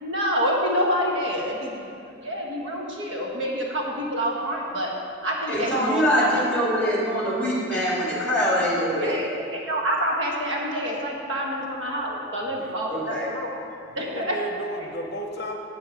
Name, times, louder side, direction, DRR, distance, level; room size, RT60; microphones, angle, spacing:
voice 1, 0.0-1.9 2.2-4.9 5.2-6.5 7.2-7.3 9.0-13.5 13.9-14.4 14.8-14.9, equal, 80° right, -1 dB, 1.4 m, -27 dB
voice 2, 5.5-9.2 12.9-13.3, equal, 10° left, -6 dB, 2.3 m, -23 dB
voice 3, 13.9-15.6, right 1 dB, 55° left, 2 dB, 0.7 m, -34 dB
8.1 x 6.8 x 5.0 m, 2.5 s
head